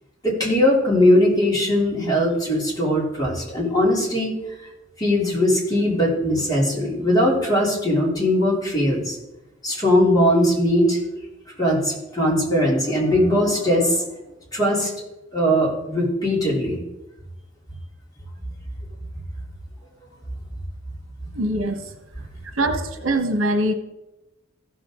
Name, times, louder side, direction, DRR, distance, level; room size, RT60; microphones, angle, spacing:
voice 1, 0.2-4.3 5.0-9.2 9.6-11.2 11.6-14.0 14.5-14.9 15.3-16.8, left 1 dB, 20° left, -4 dB, 3.2 m, -20 dB
voice 2, 21.3-21.9 22.5-23.7, right 1 dB, 85° right, 6 dB, 1.1 m, -23 dB
15.5 x 6.7 x 3.8 m, 0.97 s
head